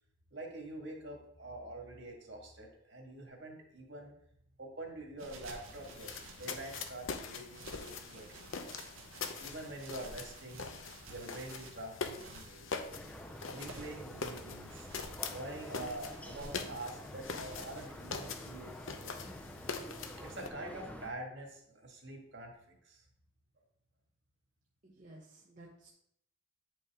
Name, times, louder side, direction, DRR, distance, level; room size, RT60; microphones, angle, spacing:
voice 1, 0.3-4.1 4.6-6.1 6.4-8.8 9.4-10.7 11.1-12.8 13.3-14.9 15.3-18.7 19.0-19.5 20.2-23.0, right 1 dB, 60° right, 1 dB, 1.9 m, -46 dB
sound 1, 5.2-7.0 7.5-12.6 13.3-14.1 14.7-15.2 16.1-16.7 17.4-17.9, right 3 dB, 85° right, 1.3 m, -53 dB
sound 2, 5.6-20.5, left 4 dB, 80° left, 0.8 m, -44 dB
sound 3, 12.9-21.1, equal, 5° left, 0.6 m, -49 dB
voice 2, 24.8-25.9, right 1 dB, 40° right, -3 dB, 0.9 m, -55 dB
8.9 x 5.5 x 3.7 m, 0.71 s
head